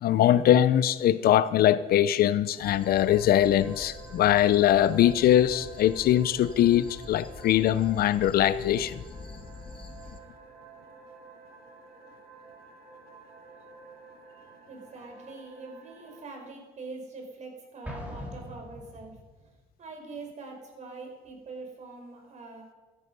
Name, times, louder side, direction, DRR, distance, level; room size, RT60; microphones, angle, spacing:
voice 1, 0.0-9.0, left 11 dB, 65° left, 0.8 m, -22 dB
sound 1, 2.6-10.2, left 4 dB, 30° left, 1.3 m, -46 dB
sound 2, 2.8-16.2, right 5 dB, 65° right, 6.5 m, -50 dB
voice 2, 14.7-19.5 19.8-22.7, right 3 dB, 45° right, 4.8 m, -43 dB
Explosion, 17.8-19.4, equal, 10° right, 4.0 m, -41 dB
15.5 x 13.5 x 5.4 m
cardioid pair, 110°, 17 cm